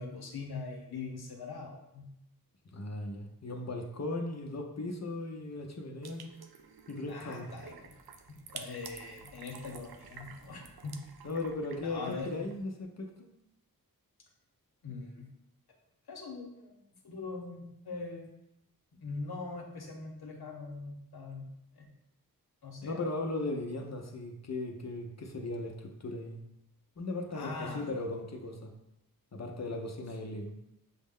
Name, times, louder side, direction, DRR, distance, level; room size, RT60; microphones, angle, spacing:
voice 1, 0.0-2.1 7.1-7.9 8.3-11.0 11.8-12.5 14.8-15.3 16.1-18.2 18.9-21.5 21.7-21.9 22.6-23.0 27.3-27.9, left 3 dB, 85° left, 2 dB, 0.9 m, -42 dB
voice 2, 2.7-6.3 6.9-7.5 11.2-13.1 22.8-26.4 27.0-28.7 29.3-30.5, left 2 dB, 45° left, 2 dB, 0.6 m, -37 dB
sound 1, 6.0-12.6, right 6 dB, 75° right, 0.5 m, -51 dB
6.2 x 2.1 x 3.6 m, 0.84 s
wide cardioid pair, 50°, 37 cm